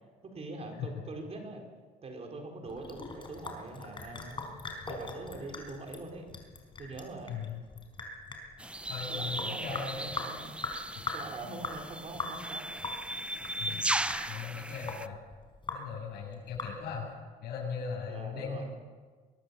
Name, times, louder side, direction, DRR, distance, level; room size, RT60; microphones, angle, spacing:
voice 1, 0.2-1.6 2.0-6.3 6.8-7.4 9.1-10.5 11.1-12.7 13.7-13.8 18.1-18.6, right 2 dB, 40° right, 2 dB, 4.7 m, -43 dB
Sink (filling or washing) / Drip, 2.7-17.1, left 3 dB, 30° left, 4.5 m, -42 dB
voice 2, 7.3-7.6 8.9-10.3 11.4-11.7 13.6-13.8 14.3-15.2 15.7-17.1 17.4-18.6, left 6 dB, 70° left, -2 dB, 7.2 m, -38 dB
sound 1, 8.6-15.1, right 1 dB, 5° right, 0.6 m, -37 dB
23.0 x 17.0 x 7.2 m, 1.5 s
cardioid pair, 110°, 17 cm